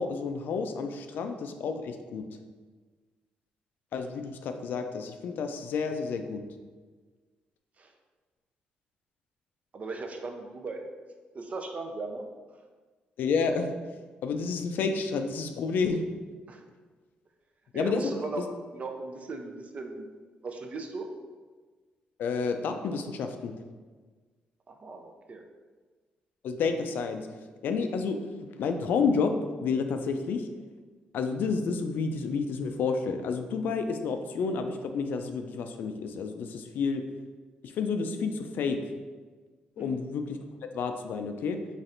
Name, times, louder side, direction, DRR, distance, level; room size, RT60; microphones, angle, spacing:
voice 1, 0.0-2.2 3.9-6.4 13.2-13.7 14.2-16.0 17.7-18.1 22.2-23.5 26.4-27.3 27.6-29.3 29.6-30.5 31.1-37.1 37.6-38.8 39.8-40.4 40.7-41.6, left 5 dB, 75° left, 6 dB, 0.3 m, -30 dB
voice 2, 9.7-10.8 11.3-12.3 16.5-16.6 17.7-18.4 18.7-20.1 20.4-21.1 24.7-25.4 39.8-40.0, right 3 dB, 45° right, 4 dB, 0.5 m, -37 dB
4.2 x 3.2 x 2.5 m, 1.4 s
cardioid pair, 75°, 3 cm